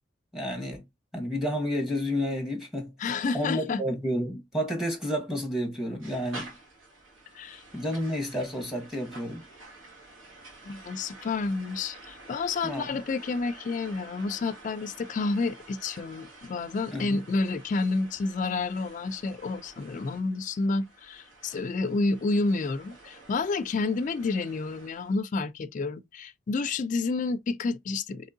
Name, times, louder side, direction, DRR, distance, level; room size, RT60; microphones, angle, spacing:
voice 1, 0.3-0.8 1.1-2.9 3.3-6.5 7.7-9.4 12.6-12.9 16.9-17.2, equal, ahead, 1.0 m, -30 dB
voice 2, 3.0-3.8 7.3-7.6 10.7-28.3, left 3 dB, 40° left, 0.3 m, -30 dB
sound 1, 6.0-25.1, right 2 dB, 75° right, 1.7 m, -49 dB
3.6 x 3.0 x 2.5 m
head